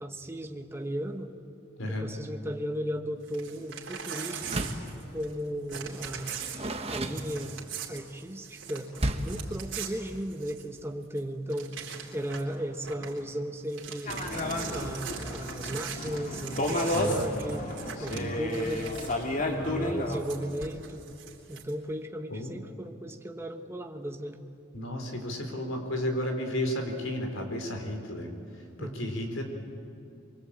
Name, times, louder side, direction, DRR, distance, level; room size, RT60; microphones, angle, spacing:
voice 1, 0.0-1.4 1.9-4.6 5.1-6.5 6.9-7.6 7.9-11.8 12.1-14.2 14.7-17.7 18.0-18.9 19.4-21.1 21.5-24.4 28.8-29.0, equal, 10° right, 4 dB, 1.3 m, -36 dB
Crumpling crinkling / Tearing, 3.2-5.4 5.7-10.8 11.2-11.3 11.5-12.5 12.8-13.2 13.6-19.3 20.1-21.7, right 7 dB, 65° right, 3.7 m, -41 dB
Door, 4.4-4.9 6.1-7.8 9.0-9.5, right 1 dB, 30° right, 1.4 m, -33 dB
sound 1, 14.1-20.2, left 1 dB, 40° left, 2.5 m, -32 dB
voice 2, 18.0-18.4 19.6-19.9 22.3-22.5 24.7-28.3 28.8-29.4, left 1 dB, 80° left, 4 dB, 4.0 m, -33 dB
24.5 x 24.0 x 8.7 m, 2.6 s
head